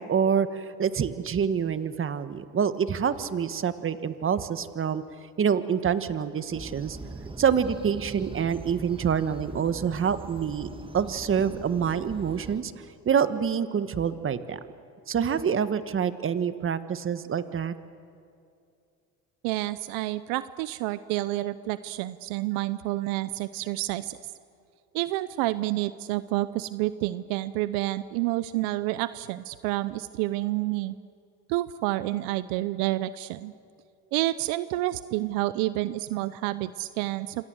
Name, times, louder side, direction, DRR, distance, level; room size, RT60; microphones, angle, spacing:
voice 1, 0.0-5.0 5.4-7.0 7.4-12.7 13.0-14.6 15.1-17.7, right 7 dB, 40° right, 12 dB, 1.5 m, -26 dB
sound 1, 6.5-12.6, right 2 dB, 15° right, 1.8 m, -42 dB
voice 2, 19.4-24.2 24.9-30.9 31.5-33.5 34.1-37.4, right 17 dB, 85° right, 15 dB, 0.7 m, -29 dB
27.5 x 26.0 x 7.9 m, 2.4 s
supercardioid pair, 85°, 34 cm